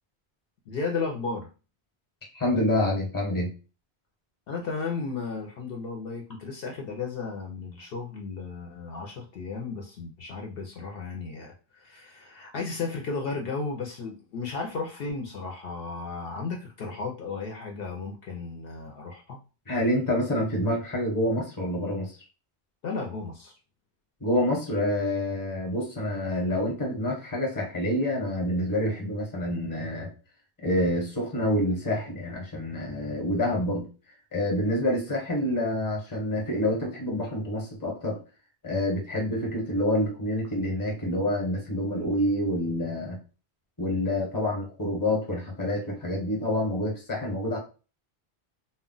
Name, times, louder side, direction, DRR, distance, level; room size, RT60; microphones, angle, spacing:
voice 1, 0.7-1.5 4.5-19.4 22.8-23.5, left 4 dB, 65° left, 1 dB, 0.7 m, -34 dB
voice 2, 2.3-3.5 19.7-22.1 24.2-30.1 30.6-33.9 34.3-38.2 38.6-43.2 43.8-47.6, left 1 dB, 20° left, -1 dB, 0.9 m, -27 dB
2.2 x 2.1 x 3.7 m, 0.33 s
omnidirectional pair, 1.1 m